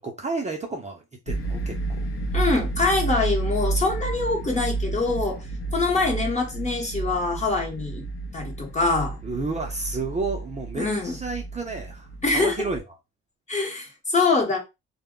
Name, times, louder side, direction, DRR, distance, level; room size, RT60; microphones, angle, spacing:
voice 1, 0.0-2.1 9.2-12.8, right 3 dB, 25° right, 0.6 m, -31 dB
sound 1, 1.3-12.8, right 3 dB, 45° left, 0.7 m, -31 dB
voice 2, 2.3-5.4 5.7-8.0 8.3-9.2 10.7-11.2 12.2-12.7 13.5-14.6, left 3 dB, 25° left, 1.0 m, -24 dB
2.2 x 2.1 x 3.7 m
cardioid pair, 90°, 30 cm